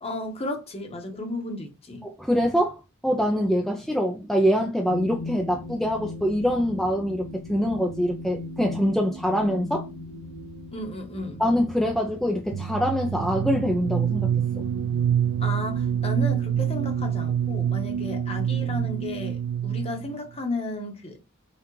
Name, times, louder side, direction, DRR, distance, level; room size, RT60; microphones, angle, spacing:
voice 1, 0.0-2.1 10.7-11.4 15.4-21.2, left 2 dB, 30° left, 1.0 m, -33 dB
voice 2, 2.0-9.9 11.4-14.3, equal, ahead, 0.4 m, -24 dB
sound 1, 4.9-19.2, left 2 dB, 65° left, 0.8 m, -40 dB
sound 2, 12.5-20.2, right 9 dB, 70° right, 0.3 m, -26 dB
5.8 x 2.4 x 3.0 m
head